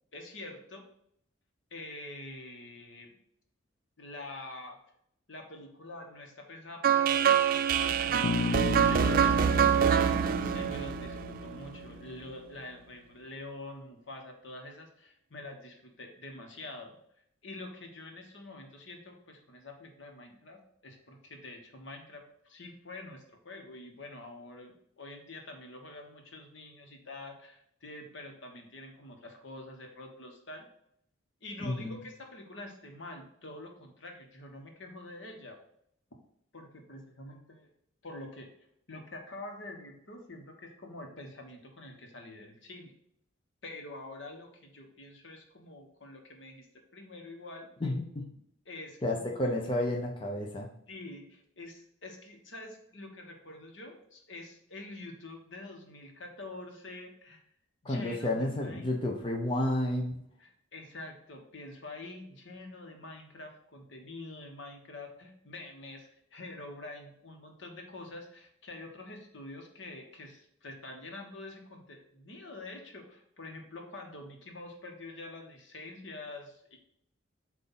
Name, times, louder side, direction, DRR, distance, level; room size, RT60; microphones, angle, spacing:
voice 1, 0.1-0.8 1.7-3.1 4.0-4.8 5.3-17.0 17.4-30.6 31.4-35.6 36.5-37.7 38.0-38.5 38.9-42.9 43.6-46.7 46.9-47.7 48.6-49.5 50.9-57.4 57.8-58.9 60.4-76.8, left 2 dB, 70° left, 3 dB, 1.3 m, -46 dB
sound 1, 6.8-11.8, right 8 dB, 45° right, 0.3 m, -25 dB
Bass guitar, 8.2-12.3, left 5 dB, 85° left, 0.3 m, -35 dB
voice 2, 31.6-32.0 47.8-48.2 49.0-50.7 57.8-60.1, left 1 dB, 25° left, 0 dB, 0.7 m, -31 dB
8.1 x 2.7 x 5.6 m, 0.71 s
head